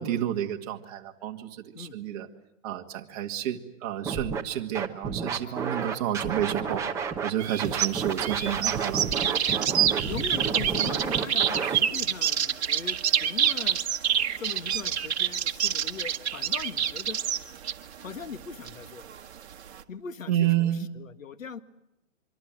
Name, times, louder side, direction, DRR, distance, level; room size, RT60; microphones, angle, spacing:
voice 1, 0.0-2.3 2.6-6.8 7.2-9.0 20.3-20.9, right 11 dB, 30° right, 4 dB, 2.0 m, -30 dB
Scratching (performance technique), 4.0-4.4 4.7-7.3 7.6-11.8, right 6 dB, 10° right, 1.1 m, -31 dB
sound 1, 7.4-19.8, right 9 dB, 55° right, 1.6 m, -27 dB
voice 2, 10.1-13.8 14.4-17.2 18.0-19.1 19.9-21.6, left 6 dB, 85° left, 11 dB, 1.9 m, -40 dB
25.5 x 24.5 x 7.6 m, 0.90 s
hypercardioid pair, 155°, 38 cm